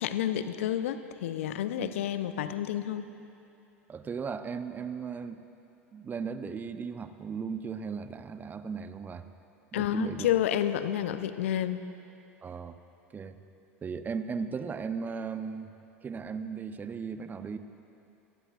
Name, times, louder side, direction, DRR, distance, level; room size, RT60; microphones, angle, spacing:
voice 1, 0.0-3.1 9.7-11.8, left 11 dB, 70° left, 11 dB, 0.7 m, -30 dB
voice 2, 3.9-5.4 5.9-9.3 9.7-10.3 12.4-12.8 13.1-13.3 13.8-15.7 16.0-17.6, right 5 dB, 25° right, 10 dB, 0.8 m, -36 dB
26.5 x 19.0 x 2.5 m, 2.8 s
figure-of-eight pair, 80°, 7 cm